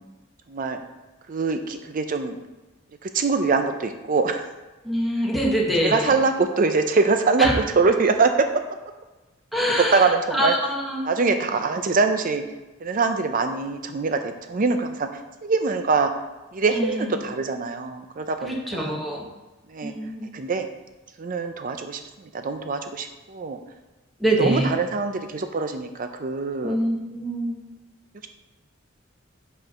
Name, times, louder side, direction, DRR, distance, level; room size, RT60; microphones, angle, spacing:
voice 1, 0.5-0.8 1.3-2.4 3.0-4.5 5.8-8.5 9.8-10.6 11.0-12.4 12.8-15.1 15.4-16.1 16.5-19.0 19.7-19.9 20.3-20.7 21.2-22.0 22.3-23.6 24.4-26.8, right 4 dB, 40° right, 7 dB, 0.5 m, -23 dB
voice 2, 4.8-6.1 7.4-7.5 9.5-11.0 16.7-17.2 18.4-19.3 19.8-20.3 24.2-24.7 26.6-27.6, equal, ahead, -4 dB, 1.2 m, -24 dB
5.4 x 4.4 x 6.1 m, 1.1 s
head